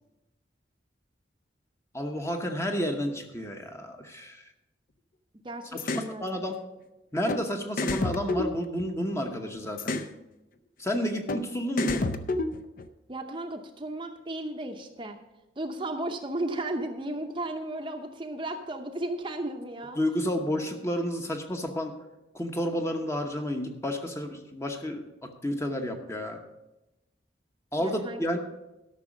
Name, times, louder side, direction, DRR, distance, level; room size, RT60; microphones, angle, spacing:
voice 1, 1.9-4.5 5.7-6.5 7.1-10.1 10.8-12.1 20.0-21.9 22.3-26.4 27.7-28.4, equal, 15° left, 4 dB, 0.9 m, -31 dB
voice 2, 5.4-6.4 13.1-15.2 15.6-20.0 27.8-28.2, right 1 dB, 25° right, 4 dB, 0.7 m, -34 dB
sound 1, 5.8-6.1 7.3-7.4 7.8-9.2 9.8-10.1 11.3-11.4 11.8-12.9, left 2 dB, 45° left, 0.6 m, -29 dB
12.5 x 6.1 x 6.1 m, 0.97 s
head